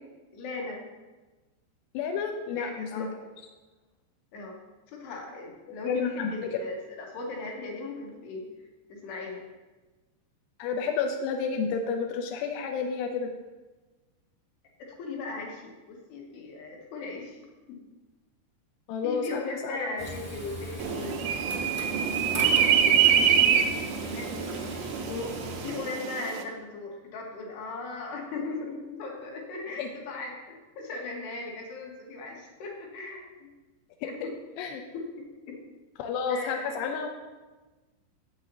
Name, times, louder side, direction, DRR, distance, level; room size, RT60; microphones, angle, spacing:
voice 1, 0.3-0.9 2.5-3.2 4.3-4.6 4.9-8.5 8.9-9.4 15.0-17.4 17.7-17.8 19.0-21.9 22.6-23.1 24.1-24.8 25.6-33.5 34.2-34.3 34.9-35.3 36.3-36.7, left 3 dB, 65° left, -1 dB, 3.2 m, -38 dB
voice 2, 1.9-3.1 5.8-6.6 10.6-13.3 18.9-20.3 25.1-25.5 29.8-29.9 34.0-34.3 34.6-34.8 36.0-37.1, left 5 dB, 85° left, 3 dB, 2.5 m, -31 dB
Frying (food), 20.0-25.8, equal, 10° left, 0.7 m, -39 dB
sound 1, 20.8-26.4, right 8 dB, 80° right, 3.1 m, -25 dB
12.0 x 8.1 x 2.8 m, 1.2 s
omnidirectional pair, 5.5 m